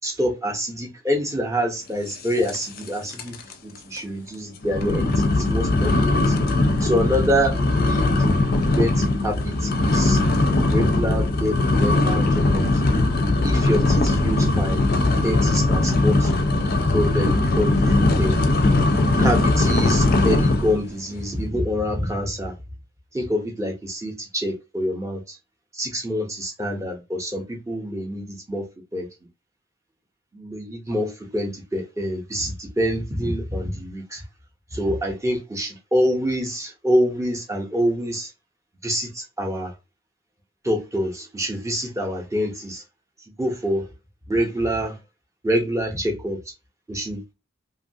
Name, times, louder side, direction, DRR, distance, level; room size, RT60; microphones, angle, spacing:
voice 1, 0.0-3.4 3.6-6.3 6.8-7.6 7.9-8.1 8.7-10.2 10.7-12.8 13.4-14.8 15.2-16.3 16.9-18.4 19.2-22.5 23.1-25.4 25.7-28.6 28.9-29.1 30.3-34.2 34.7-38.3 38.8-39.7 40.6-42.8 43.4-43.9 44.3-45.0 45.4-46.4 46.9-47.3, equal, 15° right, 0.7 m, -26 dB
sound 1, 2.5-2.9 3.1-3.5 4.0-4.1 4.6-20.8, left 2 dB, 45° left, 0.5 m, -20 dB
2.9 x 2.4 x 2.6 m
head